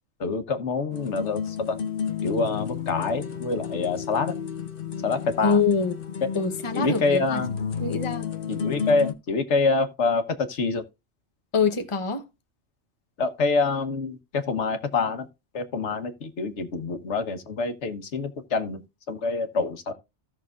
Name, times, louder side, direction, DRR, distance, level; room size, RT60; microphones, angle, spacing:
voice 1, 0.2-1.8 2.2-4.4 5.0-5.6 6.7-7.5 8.5-10.8 13.2-15.3 15.5-18.8 19.1-19.9, left 4 dB, 80° left, 1.5 m, -26 dB
sound 1, 0.9-9.1, left 7 dB, 55° left, 1.1 m, -32 dB
voice 2, 5.4-5.9 6.3-7.4 7.8-8.3 11.5-12.2, left 4 dB, 30° left, 1.0 m, -24 dB
16.0 x 6.3 x 2.4 m
omnidirectional pair, 1.2 m